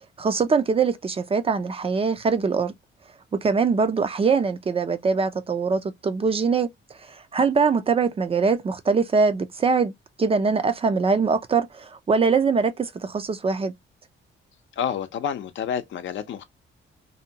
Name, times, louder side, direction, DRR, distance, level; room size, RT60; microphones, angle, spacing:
voice 1, 0.2-2.7 3.4-6.7 7.1-9.9 10.2-13.7, right 5 dB, 30° right, 0.4 m, -22 dB
voice 2, 14.8-16.4, left 8 dB, 70° left, 0.6 m, -29 dB
2.7 x 2.2 x 2.7 m
cardioid pair, 130°, 21 cm